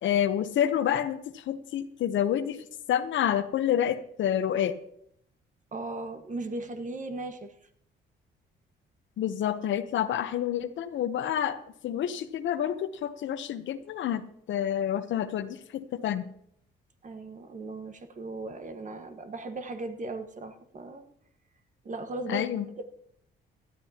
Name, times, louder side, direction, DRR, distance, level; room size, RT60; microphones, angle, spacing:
voice 1, 0.0-2.6 2.9-4.8 9.2-16.3 22.3-22.7, left 10 dB, 70° left, 12 dB, 0.9 m, -28 dB
voice 2, 5.7-7.5 17.0-21.0 21.8-22.8, right 2 dB, 40° right, 7 dB, 1.5 m, -37 dB
18.5 x 12.5 x 2.9 m, 0.71 s
cardioid pair, 90°, 20 cm